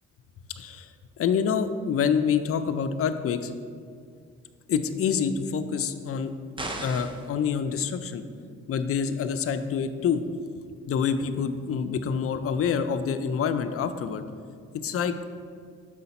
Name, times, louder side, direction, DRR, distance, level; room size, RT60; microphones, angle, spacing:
voice 1, 0.6-3.5 4.7-6.3 6.8-8.2 8.7-10.2 10.8-14.2 14.7-15.4, left 6 dB, 50° left, 9 dB, 0.5 m, -27 dB
sound 1, 6.6-7.3, right 1 dB, 15° right, 0.7 m, -34 dB
6.7 x 4.9 x 4.1 m, 2.1 s
cardioid pair, 90°, 30 cm